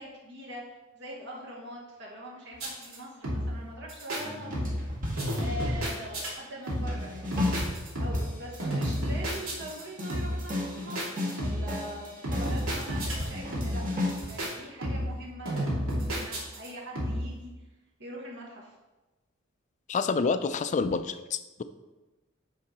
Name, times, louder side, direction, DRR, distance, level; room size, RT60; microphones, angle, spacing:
voice 1, 0.0-4.5 5.1-13.8 14.3-17.5 18.0-18.7, equal, 60° right, -3 dB, 1.5 m, -43 dB
sound 1, 2.6-3.0 3.2-3.6 3.9-4.2 4.5-4.9 5.2-6.3 6.7-7.1 7.3-8.3 8.6-9.8 10.1-10.5 11.0-11.8 12.2-13.3 13.5-13.9 14.2-14.5 14.8-15.2 15.5-16.7 17.0-17.3, equal, 75° right, 2.3 m, -31 dB
sound 2, 4.2-6.2 6.9-14.6, left 2 dB, 40° right, 1.6 m, -35 dB
voice 2, 19.9-21.6, left 4 dB, 35° left, 11 dB, 0.4 m, -28 dB
9.7 x 3.8 x 4.2 m, 1.1 s
head